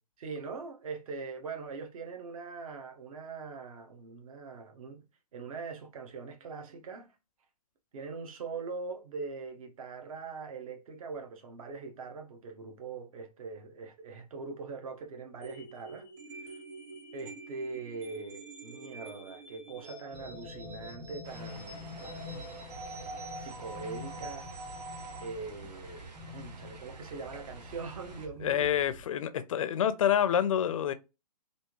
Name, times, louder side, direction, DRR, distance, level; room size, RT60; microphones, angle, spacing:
voice 1, 0.2-5.0 5.3-7.1 7.9-16.1 16.4-16.5 17.1-22.7 23.0-24.5 25.2-28.7, right 4 dB, 55° right, 1.0 m, -42 dB
sound 1, 15.4-25.3, right 2 dB, 40° right, 1.8 m, -46 dB
sound 2, 20.1-29.0, left 3 dB, 15° right, 0.7 m, -48 dB
sound 3, 21.2-28.3, right 3 dB, 85° right, 1.1 m, -51 dB
voice 2, 28.4-30.9, left 9 dB, 55° left, 0.4 m, -27 dB
3.4 x 2.6 x 3.0 m
hypercardioid pair, 150°, 21 cm